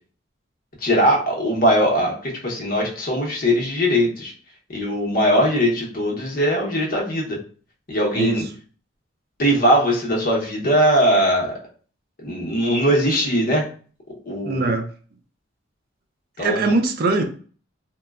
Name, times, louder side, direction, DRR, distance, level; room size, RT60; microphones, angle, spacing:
voice 1, 0.8-4.3 4.7-7.4 7.9-8.4 9.4-11.5 12.2-13.7 14.3-14.7 16.4-16.7, equal, 50° left, -2 dB, 0.8 m, -20 dB
voice 2, 8.1-8.5 14.4-14.9 16.4-17.2, right 3 dB, 50° right, 6 dB, 0.4 m, -21 dB
2.9 x 2.2 x 2.3 m, 0.42 s
head